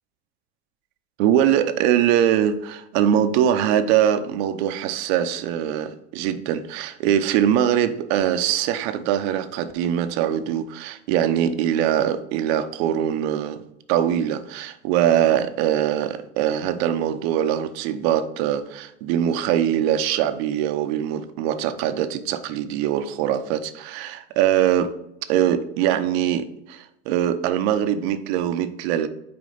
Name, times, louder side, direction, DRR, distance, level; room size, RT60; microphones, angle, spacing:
voice 1, 1.2-13.6 13.9-25.0 25.3-29.1, right 10 dB, 60° right, 0.7 m, -22 dB
5.2 x 4.7 x 3.8 m
supercardioid pair, 110°, 35 cm